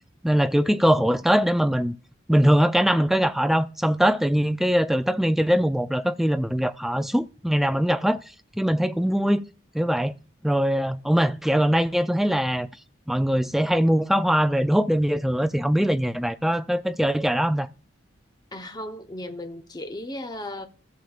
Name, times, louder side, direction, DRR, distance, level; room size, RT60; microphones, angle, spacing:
voice 1, 0.2-2.0 2.3-8.2 8.6-9.4 9.7-10.1 10.4-12.7 13.1-17.7, equal, ahead, 0.3 m, -22 dB
voice 2, 18.5-20.7, left 1 dB, 20° left, 0.7 m, -35 dB
16.0 x 6.5 x 2.4 m
head